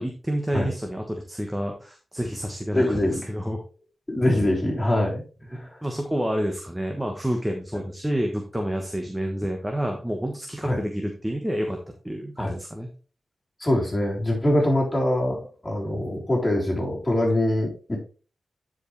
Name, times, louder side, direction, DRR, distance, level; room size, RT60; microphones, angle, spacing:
voice 1, 0.0-3.6 5.5-11.8 12.0-12.9, equal, 10° right, 3 dB, 1.2 m, -29 dB
voice 2, 2.7-3.2 4.1-5.2 5.5-5.7 10.6-10.8 12.4-12.6 13.6-18.0, left 1 dB, 20° left, -3 dB, 3.7 m, -23 dB
9.9 x 4.9 x 3.3 m, 0.36 s
cardioid pair, 75°, 0 cm